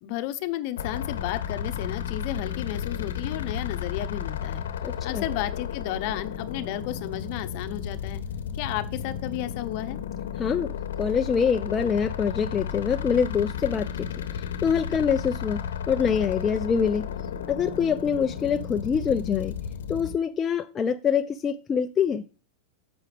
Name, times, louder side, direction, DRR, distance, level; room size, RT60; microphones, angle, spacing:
voice 1, 0.0-4.6 5.0-8.2 8.5-10.0, left 14 dB, 55° left, 0.9 m, -33 dB
sound 1, 0.8-20.1, left 8 dB, 85° left, 1.0 m, -33 dB
voice 2, 4.8-5.2 10.4-10.7 11.0-13.9 14.6-15.6 15.9-17.0 17.5-19.5 19.9-22.2, left 7 dB, 25° left, 0.5 m, -25 dB
8.9 x 7.0 x 3.5 m
hypercardioid pair, 125°, 0 cm